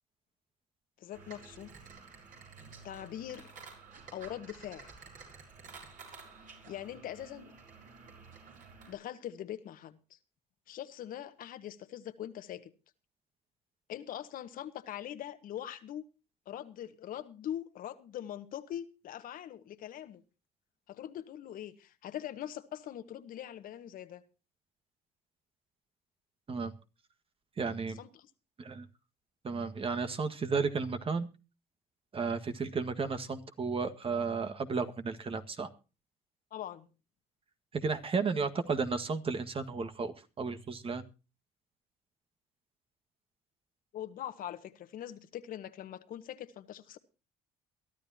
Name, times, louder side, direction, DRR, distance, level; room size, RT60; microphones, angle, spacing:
voice 1, 1.0-1.7 2.8-3.5 4.1-4.9 6.5-7.5 8.9-10.2 10.7-12.7 13.9-16.0 16.4-20.2 20.9-24.2 28.0-28.3 36.5-36.9 43.9-47.0, left 11 dB, 60° left, 1.5 m, -42 dB
sound 1, 1.1-8.9, right 4 dB, 55° right, 7.0 m, -52 dB
voice 2, 27.6-28.0 28.6-28.9 29.4-31.3 32.1-35.7 37.7-41.0, right 4 dB, 35° right, 1.7 m, -33 dB
23.0 x 12.5 x 2.9 m
supercardioid pair, 85°, 16 cm